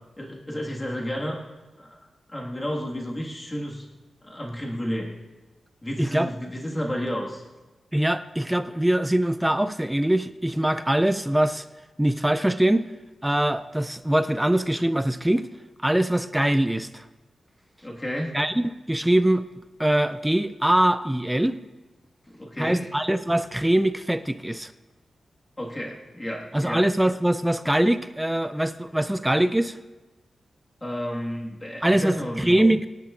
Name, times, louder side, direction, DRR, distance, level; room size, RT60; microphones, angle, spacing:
voice 1, 0.2-1.4 1.7-2.0 2.3-3.9 4.2-5.1 5.8-7.4 17.8-18.4 22.3-22.9 25.6-26.8 30.8-32.5, equal, 20° left, -2 dB, 1.7 m, -31 dB
voice 2, 6.0-6.3 7.9-11.7 12.0-12.9 13.2-15.5 15.8-17.0 18.3-19.4 19.8-21.6 22.6-24.7 26.5-29.8 31.8-32.9, right 1 dB, 5° right, 10 dB, 0.3 m, -23 dB
25.5 x 10.5 x 2.5 m, 1.2 s
wide cardioid pair, 120°, 0 cm